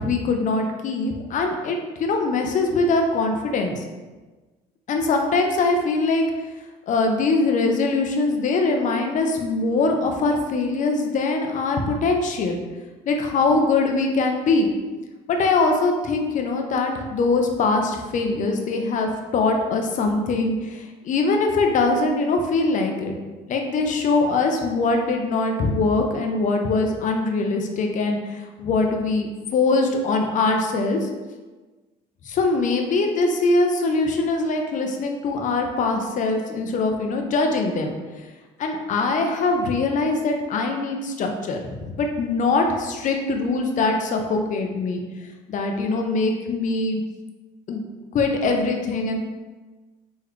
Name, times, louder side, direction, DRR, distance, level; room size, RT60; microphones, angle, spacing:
voice 1, 0.0-3.8 4.9-6.2 6.9-12.6 13.1-14.7 15.3-23.1 23.5-31.1 32.2-37.9 38.6-45.0 45.5-47.0 47.7-47.8 48.1-49.2, left 3 dB, 50° left, 3 dB, 0.6 m, -22 dB
3.9 x 3.1 x 3.0 m, 1.3 s
cardioid pair, 110°, 17 cm